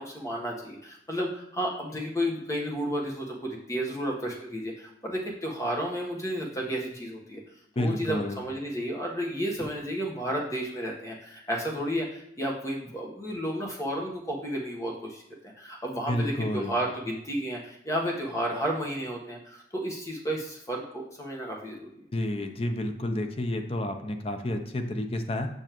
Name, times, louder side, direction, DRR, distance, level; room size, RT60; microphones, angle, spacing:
voice 1, 0.0-7.4 7.8-21.9, equal, 15° left, -2 dB, 1.2 m, -32 dB
voice 2, 7.8-8.4 16.1-16.7 22.1-25.5, left 1 dB, 35° left, 6 dB, 0.5 m, -30 dB
6.9 x 6.2 x 3.0 m, 0.74 s
head